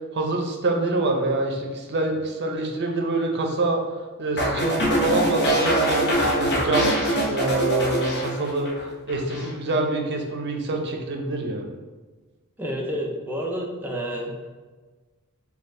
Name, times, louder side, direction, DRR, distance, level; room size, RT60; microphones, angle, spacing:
voice 1, 0.1-3.8 4.2-7.0 7.3-8.7 9.1-11.7, right 2 dB, 50° right, 2 dB, 0.6 m, -25 dB
sound 1, 4.4-8.8 9.1-9.5, right 1 dB, 50° left, 0.8 m, -23 dB
voice 2, 12.6-14.3, equal, 10° right, -1 dB, 0.5 m, -29 dB
4.2 x 2.4 x 3.7 m, 1.3 s
head